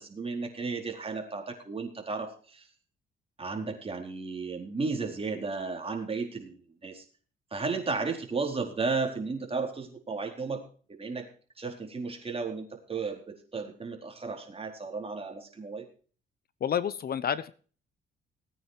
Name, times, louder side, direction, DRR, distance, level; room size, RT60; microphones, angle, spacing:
voice 1, 0.0-2.7 3.4-6.6 6.8-7.0 7.5-10.6 11.0-11.3 11.6-15.8, right 4 dB, 30° right, 2 dB, 4.3 m, -34 dB
voice 2, 16.6-17.5, left 8 dB, 50° left, 16 dB, 0.9 m, -29 dB
18.5 x 9.3 x 4.6 m, 0.41 s
cardioid pair, 90°, 20 cm